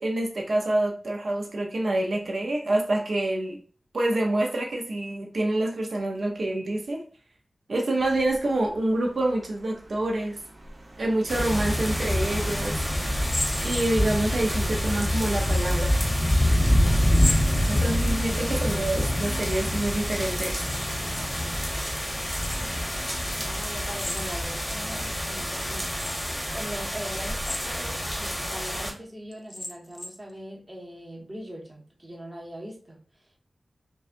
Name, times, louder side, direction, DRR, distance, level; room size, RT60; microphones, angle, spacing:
voice 1, 0.0-3.6 3.9-7.0 7.7-10.4 11.0-12.8 13.6-16.0 17.7-20.6, right 1 dB, 80° right, 0.7 m, -27 dB
sound 1, 8.0-18.7 19.5-19.9, right 1 dB, 60° right, 1.0 m, -44 dB
sound 2, 11.3-28.9, equal, ahead, 0.9 m, -26 dB
sound 3, 13.1-14.4 15.4-16.0 17.0-18.2 19.2-20.0 20.2-21.2 22.2-22.8 23.9-24.7 25.2-25.3 25.9-26.4 27.3-28.0 28.5-28.6 29.3-30.3, left 2 dB, 35° left, 0.4 m, -36 dB
voice 2, 13.7-14.1 22.5-26.0 26.5-33.0, right 1 dB, 30° right, 0.9 m, -41 dB
5.3 x 2.3 x 2.5 m
wide cardioid pair, 80°, 0 cm